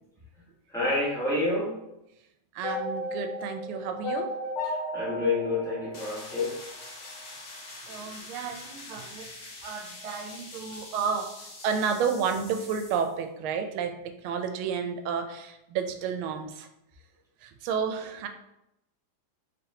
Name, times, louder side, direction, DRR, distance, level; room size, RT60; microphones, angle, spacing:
voice 1, 0.7-1.8 4.9-6.6, left 2 dB, ahead, -8 dB, 0.9 m, -28 dB
voice 2, 2.5-4.3 7.8-9.3 9.6-16.7 17.4-18.3, right 6 dB, 90° right, 6 dB, 1.4 m, -31 dB
sound 1, 2.6-6.8, left 1 dB, 65° left, 1.4 m, -34 dB
sound 2, 5.9-13.1, left 2 dB, 45° left, 0.7 m, -45 dB
4.2 x 3.5 x 2.7 m, 0.87 s
omnidirectional pair, 2.2 m